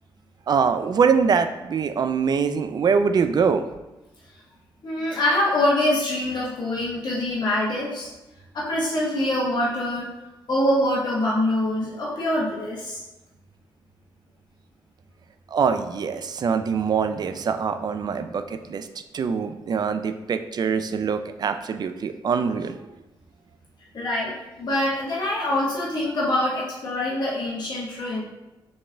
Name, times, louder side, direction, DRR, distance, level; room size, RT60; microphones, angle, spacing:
voice 1, 0.5-3.6 15.5-18.9 19.1-22.8, right 6 dB, 50° right, 9 dB, 0.4 m, -23 dB
voice 2, 4.8-8.1 8.5-10.1 10.5-13.0 23.9-28.2, left 1 dB, 55° left, -5 dB, 1.1 m, -24 dB
4.2 x 3.6 x 3.3 m, 1.0 s
cardioid pair, 80°, 9 cm